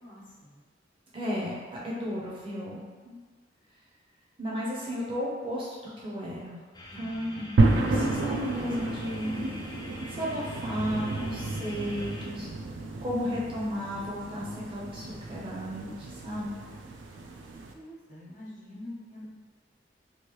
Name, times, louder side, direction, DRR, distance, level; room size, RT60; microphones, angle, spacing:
voice 1, 0.0-0.5 6.9-7.4 17.7-19.3, left 1 dB, 40° left, -8 dB, 0.9 m, -45 dB
voice 2, 1.1-1.6 1.8-3.1 4.4-6.6 7.0-7.5 7.9-9.6 10.2-12.5 13.0-16.5, equal, 30° right, -6 dB, 0.6 m, -34 dB
sound 1, 6.7-12.3, left 1 dB, 20° left, 0.3 m, -45 dB
sound 2, 7.6-17.7, right 2 dB, 85° right, 0.4 m, -31 dB
3.0 x 2.6 x 3.0 m, 1.5 s
head